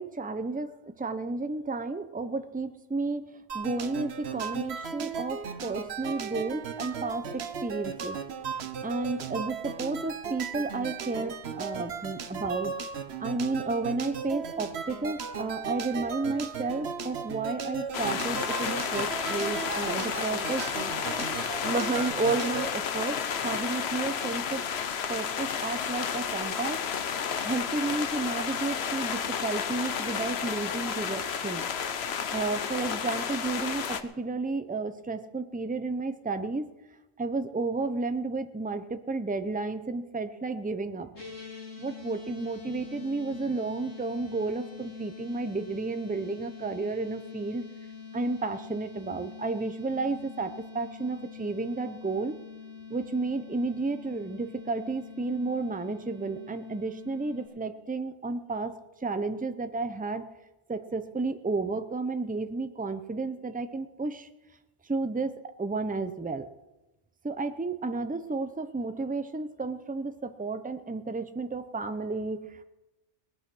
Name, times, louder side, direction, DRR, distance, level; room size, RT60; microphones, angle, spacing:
voice 1, 0.0-8.2 8.8-12.7 13.2-20.7 21.2-21.3 21.6-24.6 25.1-26.8 27.4-31.6 32.3-36.7 37.2-41.1 41.8-47.6 48.1-52.3 52.9-58.7 59.0-60.3 60.7-64.3 64.9-66.5 67.2-72.6, right 3 dB, 10° right, 9 dB, 0.4 m, -32 dB
sound 1, 3.5-22.7, right 6 dB, 55° right, 1.1 m, -36 dB
sound 2, 17.9-34.0, left 7 dB, 60° left, 1.0 m, -32 dB
sound 3, 41.1-57.5, left 6 dB, 80° left, 3.9 m, -45 dB
19.5 x 8.7 x 6.2 m, 1.0 s
omnidirectional pair, 1.3 m